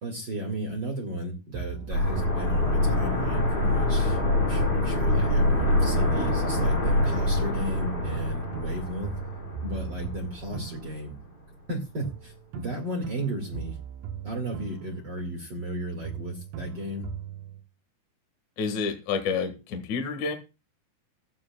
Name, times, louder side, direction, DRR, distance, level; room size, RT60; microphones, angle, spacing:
voice 1, 0.0-4.2 4.5-9.1 9.6-11.1 11.7-13.8 14.2-17.1, right 1 dB, 45° right, 1 dB, 1.5 m, -34 dB
sound 1, 1.5-3.7 4.0-7.7 8.0-11.7 12.0-15.7 16.0-17.6, right 8 dB, 80° right, 1.9 m, -40 dB
sound 2, 1.9-10.6 10.9-11.0, left 1 dB, 10° left, 3.4 m, -25 dB
voice 2, 18.6-20.3, left 5 dB, 55° left, 5 dB, 2.5 m, -29 dB
15.5 x 11.5 x 2.3 m, 0.30 s
omnidirectional pair, 5.2 m